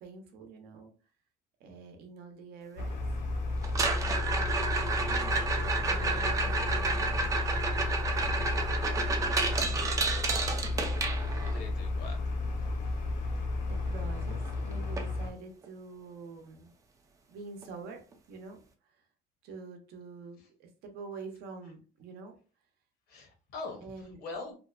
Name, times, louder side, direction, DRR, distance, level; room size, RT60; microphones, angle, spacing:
voice 1, 0.0-0.9 1.6-3.0 4.2-7.4 8.3-8.8 9.1-9.6 13.0-13.4 13.6-16.7 17.3-18.6 18.8-19.0 19.4-22.4 23.8-24.2, right 4 dB, 70° right, 5 dB, 0.7 m, -47 dB
sound 1, 2.8-15.3, left 2 dB, 50° left, 0.5 m, -33 dB
sound 2, 3.6-11.6 13.9-14.0 14.2-14.5 15.0-15.1 15.6-15.7 17.6-17.7, right 3 dB, 20° right, 0.3 m, -31 dB
voice 2, 11.3-12.2 12.5-13.0 20.4-20.5 23.1-24.5, left 3 dB, 65° left, 3 dB, 0.9 m, -43 dB
2.7 x 2.1 x 2.4 m, 0.36 s
cardioid pair, 160°, 17 cm